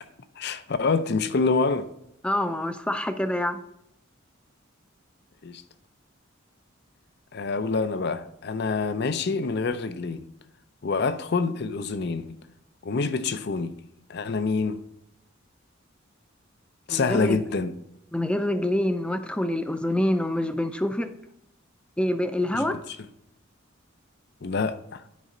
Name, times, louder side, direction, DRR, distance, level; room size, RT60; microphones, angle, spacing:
voice 1, 0.4-1.9 5.4-5.6 7.3-10.2 10.8-12.3 12.8-13.7 14.1-14.8 16.9-17.8 22.5-22.7 24.4-25.0, left 4 dB, 55° left, 0.5 m, -26 dB
voice 2, 2.2-3.6 16.9-17.4 18.1-21.1 22.0-22.8, left 1 dB, 5° left, 0.4 m, -26 dB
9.4 x 5.4 x 3.8 m
head